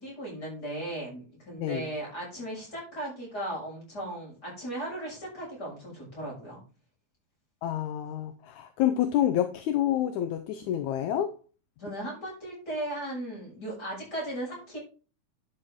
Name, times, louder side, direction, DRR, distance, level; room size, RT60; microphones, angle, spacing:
voice 1, 0.0-6.6 11.8-14.8, right 1 dB, 30° left, -4 dB, 7.1 m, -37 dB
voice 2, 7.6-11.3, left 11 dB, 75° left, 9 dB, 2.1 m, -28 dB
11.0 x 6.7 x 3.7 m, 0.35 s
omnidirectional pair, 3.6 m